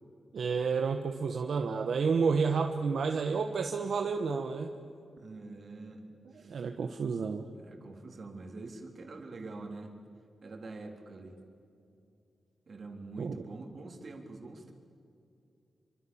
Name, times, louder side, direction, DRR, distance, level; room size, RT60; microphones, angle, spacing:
voice 1, 0.3-4.7 6.4-7.4 13.2-13.3, right 5 dB, 70° right, 5 dB, 1.3 m, -30 dB
voice 2, 5.2-6.7 7.5-9.9 10.4-11.4 12.7-14.7, right 3 dB, 50° right, 3 dB, 3.9 m, -45 dB
27.5 x 25.0 x 7.3 m, 2.6 s
wide cardioid pair, 105°, 0 cm